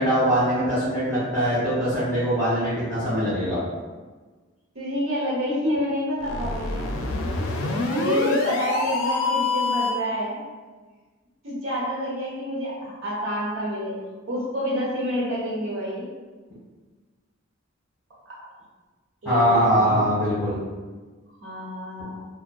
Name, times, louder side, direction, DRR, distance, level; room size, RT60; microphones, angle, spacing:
voice 1, 0.0-3.6 19.2-20.6, equal, 15° left, -15 dB, 1.5 m, -22 dB
voice 2, 4.7-6.9 7.7-10.4 11.4-14.0 14.3-16.1 19.2-20.0 21.4-22.3, equal, 75° right, -7 dB, 0.9 m, -28 dB
sound 1, 6.2-10.1, left 3 dB, 80° left, 0.4 m, -26 dB
3.3 x 2.1 x 2.2 m, 1.3 s
head